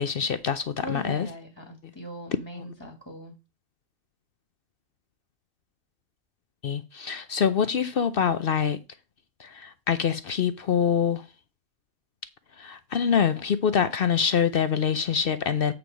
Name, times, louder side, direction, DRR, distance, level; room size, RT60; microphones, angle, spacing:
voice 1, 0.0-1.3 2.5-2.7 6.6-8.8 9.4-11.2 12.6-15.7, left 7 dB, 55° left, 0.7 m, -25 dB
voice 2, 0.8-3.3, left 1 dB, 15° left, 1.7 m, -39 dB
8.7 x 4.6 x 5.1 m
omnidirectional pair, 1.4 m